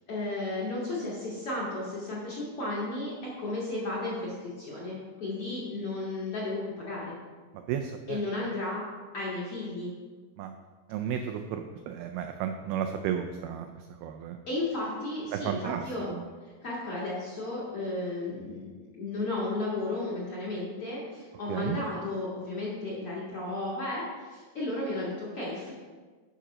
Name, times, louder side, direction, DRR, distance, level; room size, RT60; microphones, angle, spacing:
voice 1, 0.1-7.1 8.1-8.8 9.1-9.9 14.5-16.1 16.4-25.7, left 2 dB, 45° left, -5 dB, 1.9 m, -34 dB
voice 2, 7.7-8.2 10.4-10.5 10.9-14.4 15.3-16.2 21.5-21.8, right 9 dB, 90° right, 6 dB, 2.1 m, -33 dB
10.0 x 6.0 x 4.9 m, 1.4 s
omnidirectional pair, 4.9 m